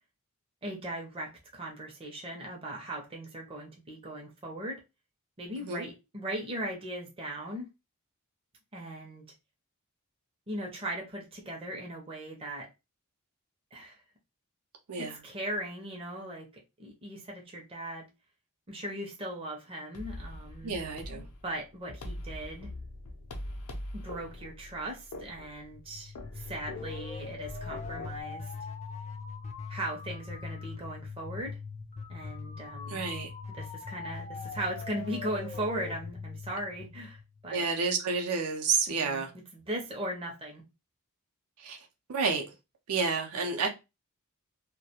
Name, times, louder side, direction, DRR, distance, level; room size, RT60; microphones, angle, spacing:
voice 1, 0.6-4.8 5.4-7.7 8.7-9.2 10.5-12.7 13.7-14.0 15.0-16.5 16.8-18.1 18.7-20.8 21.1-22.7 23.9-28.5 29.7-31.6 32.1-33.0 33.6-37.6 39.0-39.3 39.5-40.6, right 1 dB, 25° right, 0.5 m, -38 dB
sound 1, 19.9-28.2, left 1 dB, 80° left, 0.5 m, -43 dB
voice 2, 20.6-21.2 32.9-33.3 37.5-39.3 41.6-41.8 42.1-42.4 42.9-43.7, right 5 dB, 80° right, 0.5 m, -30 dB
sound 2, 25.7-37.6, left 5 dB, 30° left, 0.3 m, -41 dB
2.3 x 2.1 x 2.8 m
head